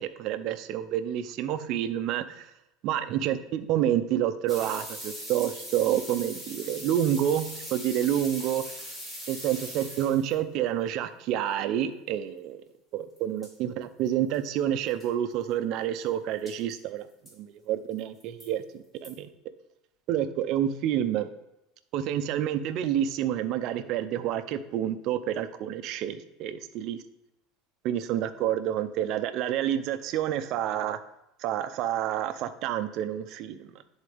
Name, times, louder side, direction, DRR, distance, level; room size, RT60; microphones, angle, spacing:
voice 1, 0.0-2.5 2.8-8.8 9.3-12.6 12.9-17.1 17.3-19.3 20.1-21.3 21.9-27.0 27.8-31.0 31.4-33.8, right 10 dB, 55° right, 10 dB, 0.5 m, -29 dB
sound 1, 4.5-10.4 13.2-13.3 13.4-13.5 14.1-14.2 14.3-14.4 14.9-15.0 16.5-16.7 17.3-17.4 18.0-18.5 19.0-19.1, equal, 10° left, 2.1 m, -40 dB
10.5 x 4.0 x 3.4 m, 0.86 s
supercardioid pair, 130°, 0 cm